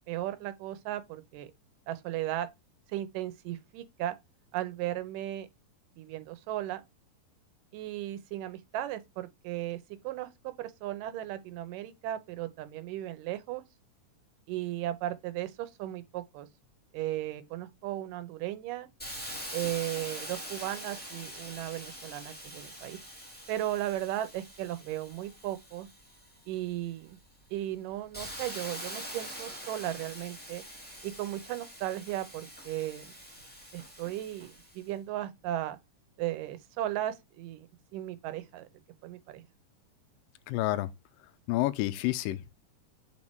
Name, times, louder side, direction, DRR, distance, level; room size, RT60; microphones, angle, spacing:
voice 1, 0.0-1.5 1.9-2.5 2.9-4.2 4.5-5.5 6.0-6.8 7.7-13.6 14.5-16.5 16.9-18.9 19.5-23.0 23.5-25.9 26.5-27.2 27.5-30.6 31.0-33.1 33.7-35.8 36.2-37.7 37.9-38.7 39.0-39.4, right 13 dB, 85° right, 2.3 m, -36 dB
Hiss, 19.0-26.6 27.1-34.8, equal, 10° left, 0.5 m, -44 dB
voice 2, 40.5-40.9 41.5-42.5, left 16 dB, 85° left, 2.2 m, -29 dB
5.5 x 4.3 x 4.5 m
omnidirectional pair, 3.8 m